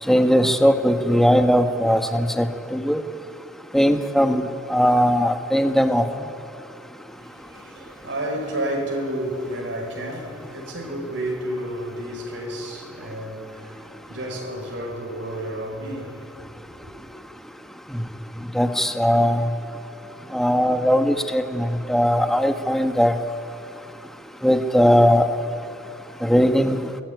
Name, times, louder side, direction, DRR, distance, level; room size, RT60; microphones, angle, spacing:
voice 1, 0.1-3.0 3.7-6.3 17.9-18.0 18.5-19.5 20.3-23.1 24.4-25.3 26.2-26.8, equal, ahead, 1.4 m, -19 dB
voice 2, 7.1-16.9, right 1 dB, 75° right, 6.1 m, -31 dB
25.0 x 20.0 x 9.6 m
head